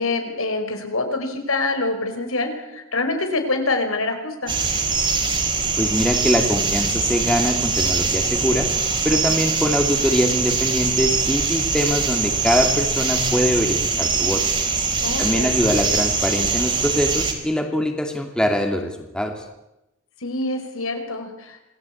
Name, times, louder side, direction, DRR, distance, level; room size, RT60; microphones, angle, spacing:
voice 1, 0.0-4.5 15.0-15.6 20.2-21.6, left 2 dB, 80° left, 5 dB, 5.1 m, -25 dB
sound 1, 4.5-17.3, right 4 dB, 25° right, 4.0 m, -22 dB
voice 2, 5.8-8.7 9.0-14.4 15.2-19.4, equal, 5° left, 3 dB, 2.6 m, -23 dB
27.0 x 19.5 x 8.7 m, 0.92 s
head